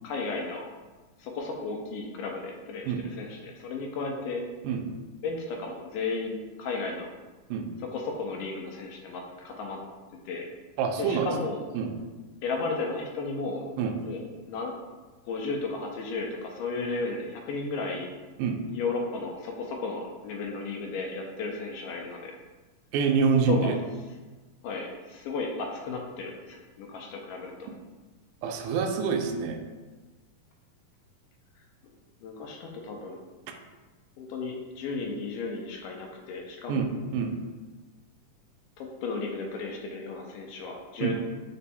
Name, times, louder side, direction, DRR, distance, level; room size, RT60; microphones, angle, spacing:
voice 1, 0.0-0.7 1.2-4.4 5.2-7.1 7.8-9.8 10.3-10.5 11.0-11.6 12.4-13.6 14.0-14.7 15.3-18.1 18.7-22.4 23.5-23.7 24.6-27.7 32.2-33.2 34.2-36.9 38.8-41.1, left 3 dB, 80° left, 1 dB, 2.1 m, -34 dB
voice 2, 10.8-11.3 11.7-12.0 13.8-14.0 18.4-18.6 22.9-23.8 28.4-29.6 36.7-37.3 41.0-41.1, right 5 dB, 80° right, 3 dB, 1.7 m, -26 dB
5.2 x 2.2 x 4.1 m, 1.3 s
omnidirectional pair, 3.9 m